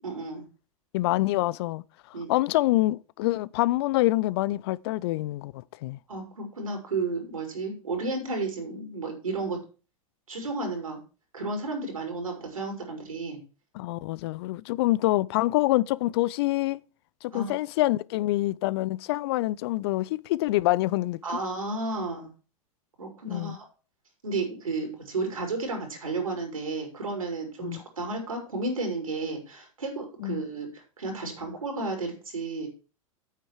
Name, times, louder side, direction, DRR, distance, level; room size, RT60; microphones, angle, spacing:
voice 1, 0.0-0.5 2.1-2.3 6.1-9.6 10.3-11.0 11.3-13.4 17.3-17.5 21.2-22.3 23.0-23.7 24.2-32.7, right 3 dB, 75° right, 5.4 m, -32 dB
voice 2, 0.9-1.8 2.3-6.0 13.7-16.8 17.2-21.2 23.3-23.6 27.6-27.8 30.2-30.4, left 18 dB, 50° left, 0.5 m, -26 dB
9.2 x 9.1 x 4.8 m
figure-of-eight pair, 90°, 18 cm